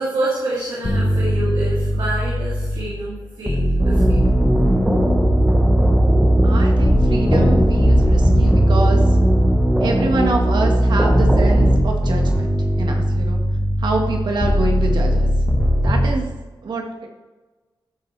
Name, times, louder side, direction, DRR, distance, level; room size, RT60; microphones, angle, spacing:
voice 1, 0.0-4.2, right 1 dB, 90° right, -8 dB, 3.1 m, -27 dB
sound 1, 0.8-3.0 3.5-10.6 11.1-16.1, equal, 15° left, 1.3 m, -20 dB
sound 2, 3.8-11.8, right 1 dB, 10° right, 0.9 m, -17 dB
voice 2, 6.4-9.0 9.8-12.5 12.7-13.4 13.8-15.3 15.8-16.3 16.6-16.8, right 3 dB, 70° right, 2 dB, 1.7 m, -25 dB
13.5 x 7.6 x 3.4 m, 1.2 s
wide cardioid pair, 170°, 8 cm